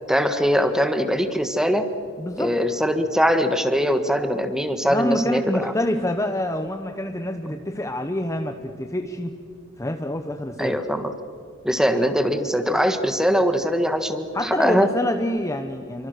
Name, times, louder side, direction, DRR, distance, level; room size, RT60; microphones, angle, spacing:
voice 1, 0.1-1.9 2.4-5.7 7.5-7.6 10.6-11.1 11.6-14.9, equal, 5° right, 8 dB, 1.5 m, -22 dB
voice 2, 2.2-2.5 4.9-9.4 9.8-10.8 14.3-16.1, left 1 dB, 15° left, 6 dB, 0.9 m, -26 dB
28.0 x 24.5 x 6.6 m, 2.5 s
head